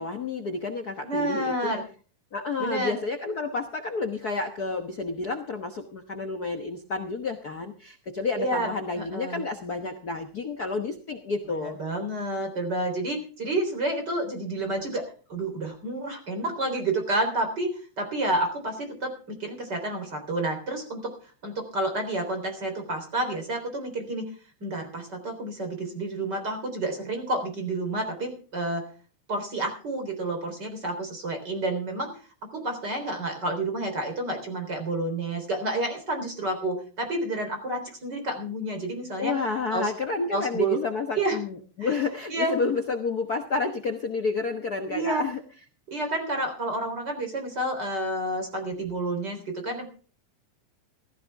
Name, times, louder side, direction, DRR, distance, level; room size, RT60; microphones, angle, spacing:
voice 1, 0.0-1.7 2.3-11.8 39.2-45.4, left 4 dB, 70° left, 5 dB, 0.9 m, -30 dB
voice 2, 1.0-1.8 2.6-3.0 8.4-9.4 11.5-15.0 15.3-17.7 18.0-21.1 21.4-24.3 24.6-28.9 29.3-32.1 32.5-39.4 39.7-39.9 40.3-40.8 41.2-41.4 41.8-41.9 42.3-42.5 44.9-45.2 45.9-49.9, right 2 dB, 35° right, 5 dB, 4.1 m, -29 dB
16.0 x 15.0 x 3.5 m, 0.38 s
omnidirectional pair, 3.5 m